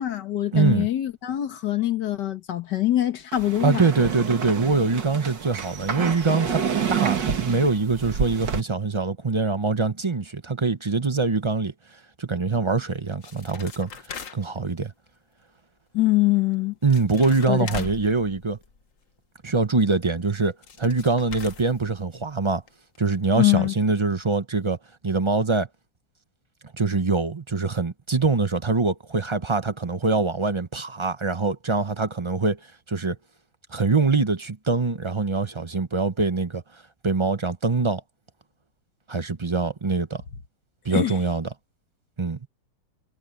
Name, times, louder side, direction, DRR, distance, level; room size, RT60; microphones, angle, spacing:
voice 1, 0.0-3.9 15.9-16.7 17.5-17.9 23.4-23.7 40.9-41.1, left 15 dB, 70° left, 1.9 m, -23 dB
voice 2, 0.5-0.9 3.6-6.6 6.9-11.7 12.2-13.9 14.3-14.9 16.8-18.6 19.4-22.6 23.0-24.8 25.0-25.7 26.7-32.6 32.9-33.2 33.7-38.0 39.1-40.2 40.8-41.5 42.2-42.4, right 4 dB, 35° right, 0.5 m, -24 dB
sound 1, 3.3-8.6, right 7 dB, 75° right, 2.5 m, -28 dB
sound 2, 12.9-14.7 16.5-16.6 16.8-19.0 20.3-20.4 20.6-22.3 22.7-22.8 23.0-23.1 23.6-23.7 23.9-24.0, left 5 dB, 50° left, 1.6 m, -40 dB
omnidirectional pair, 1.9 m